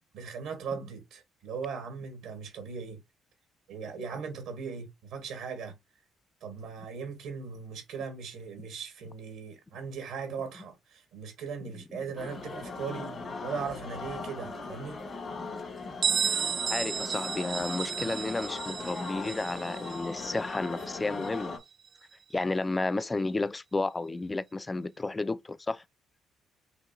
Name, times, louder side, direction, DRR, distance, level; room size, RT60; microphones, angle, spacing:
voice 1, 0.1-3.0 3.7-5.7 6.4-13.1 13.4-15.0, right 5 dB, 80° right, 1.3 m, -38 dB
voice 2, 11.7-12.0 15.3-15.5 15.8-21.6 22.3-25.8, left 3 dB, 25° left, 0.4 m, -32 dB
sound 1, 12.2-21.6, left 3 dB, 50° left, 1.8 m, -39 dB
Bell, 16.0-21.5, right 7 dB, 55° right, 0.4 m, -33 dB
5.0 x 2.8 x 2.6 m
supercardioid pair, 65°, 0 cm